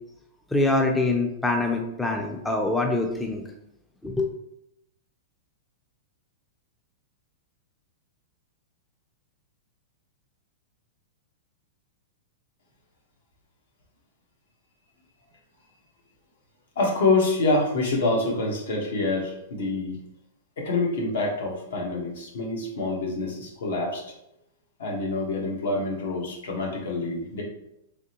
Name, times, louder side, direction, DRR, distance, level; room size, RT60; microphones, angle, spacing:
voice 1, 0.5-3.4 4.0-4.3, left 2 dB, 5° left, 2 dB, 0.4 m, -24 dB
voice 2, 16.8-20.0 20.6-24.0 24.8-27.4, left 2 dB, 80° left, -1 dB, 1.2 m, -26 dB
3.5 x 3.2 x 2.9 m, 0.81 s
hypercardioid pair, 145°, 0 cm